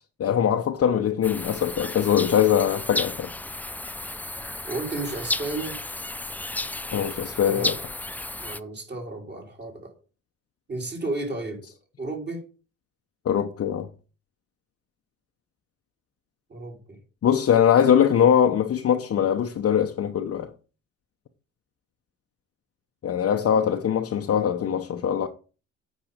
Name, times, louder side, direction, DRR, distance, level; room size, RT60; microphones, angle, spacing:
voice 1, 0.2-3.3 6.9-7.8 13.2-13.9 17.2-20.5 23.0-25.3, left 9 dB, 50° left, 0.8 m, -22 dB
sound 1, 1.2-8.6, left 2 dB, 5° left, 0.3 m, -33 dB
voice 2, 4.6-5.8 7.5-7.8 8.4-9.9 10.7-11.6 12.0-12.4 16.5-17.0, right 2 dB, 35° right, 3.7 m, -33 dB
8.9 x 5.4 x 5.1 m
cardioid pair, 90°, 30 cm